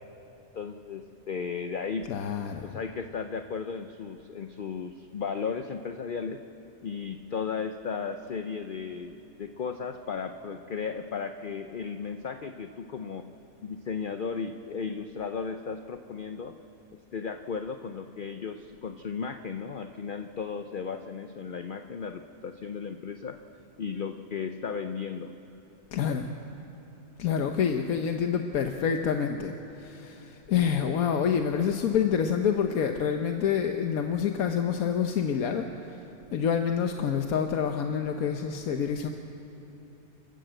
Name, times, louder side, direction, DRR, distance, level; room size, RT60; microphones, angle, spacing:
voice 1, 0.5-2.0 2.6-6.4 6.8-13.2 13.6-16.5 17.1-23.4 23.8-25.3, left 5 dB, 50° left, 7 dB, 0.7 m, -35 dB
voice 2, 2.1-2.7 25.9-26.3 27.2-36.0 36.3-39.1, left 7 dB, 85° left, 5 dB, 1.3 m, -27 dB
28.0 x 13.0 x 7.8 m, 3.0 s
omnidirectional pair, 1.5 m